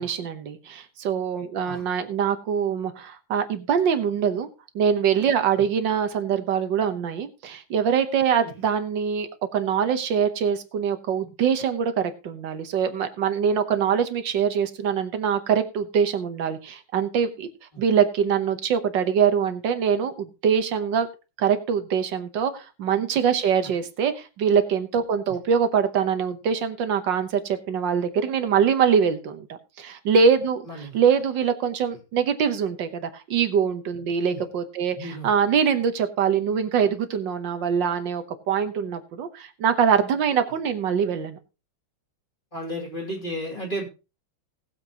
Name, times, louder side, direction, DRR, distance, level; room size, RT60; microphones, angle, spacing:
voice 1, 0.0-4.5 4.7-17.5 17.8-21.1 21.4-29.5 29.8-41.4, right 7 dB, 65° right, 9 dB, 1.6 m, -23 dB
voice 2, 30.7-31.0 34.3-34.4 34.9-35.3 42.5-43.9, right 1 dB, 25° left, -3 dB, 3.0 m, -33 dB
19.5 x 7.4 x 2.9 m, 0.31 s
omnidirectional pair, 2.2 m